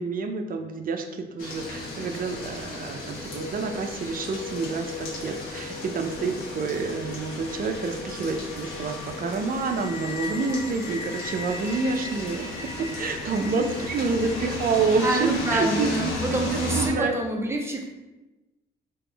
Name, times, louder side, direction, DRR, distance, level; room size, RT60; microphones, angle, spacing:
voice 1, 0.0-16.1 16.7-17.2, right 4 dB, 45° right, 5 dB, 0.6 m, -28 dB
sound 1, 1.4-16.9, left 2 dB, 85° left, 1.3 m, -34 dB
voice 2, 15.0-17.8, right 2 dB, 15° right, 1 dB, 0.7 m, -27 dB
3.5 x 3.0 x 4.5 m, 1.1 s
cardioid pair, 90°, 20 cm